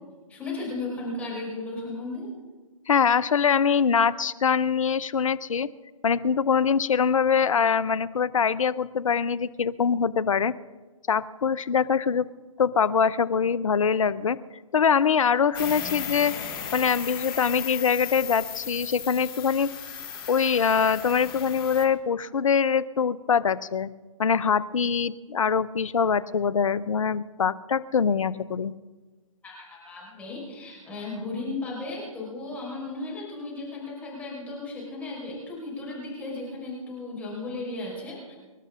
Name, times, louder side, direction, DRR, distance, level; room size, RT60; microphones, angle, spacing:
voice 1, 0.3-2.3 29.4-38.3, left 2 dB, 10° left, -5 dB, 5.0 m, -35 dB
voice 2, 2.9-5.7 6.0-10.5 11.1-12.3 12.6-14.4 14.7-16.4 16.7-19.7 20.3-23.9 24.2-28.7, left 6 dB, 70° left, 17 dB, 0.7 m, -23 dB
sound 1, 15.5-21.8, left 8 dB, 40° left, 3.2 m, -36 dB
26.0 x 12.0 x 3.7 m, 1.3 s
figure-of-eight pair, 130°, 17 cm